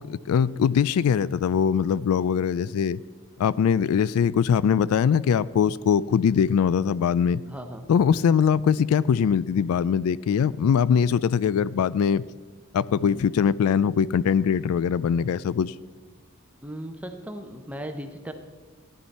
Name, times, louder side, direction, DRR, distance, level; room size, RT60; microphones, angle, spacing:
voice 1, 0.0-3.0 3.4-7.4 7.9-12.2 12.7-15.7, left 7 dB, 85° left, 19 dB, 0.3 m, -22 dB
voice 2, 7.4-7.9 13.0-13.3 16.6-18.3, right 1 dB, 5° right, 5 dB, 0.7 m, -37 dB
14.5 x 11.0 x 4.1 m, 1.5 s
head